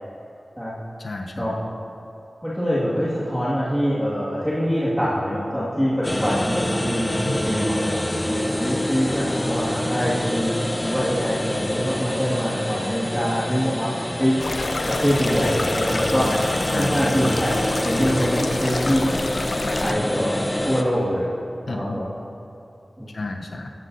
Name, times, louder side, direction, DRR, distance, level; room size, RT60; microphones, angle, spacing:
voice 1, 1.0-1.6 7.2-7.6 16.3-17.0 21.7-22.0 23.1-23.7, left 2 dB, 80° left, 3 dB, 0.8 m, -32 dB
voice 2, 2.4-7.1 7.3-10.5 10.8-14.4 14.9-16.3 16.7-17.5 17.8-19.2 19.5-21.3 21.7-22.1 23.0-23.1, equal, ahead, -11 dB, 2.0 m, -24 dB
sound 1, 6.0-20.8, left 1 dB, 25° left, 0.8 m, -26 dB
sound 2, 14.4-19.9, left 2 dB, 55° left, 0.4 m, -29 dB
14.0 x 11.5 x 2.7 m, 2.8 s
wide cardioid pair, 75°, 0 cm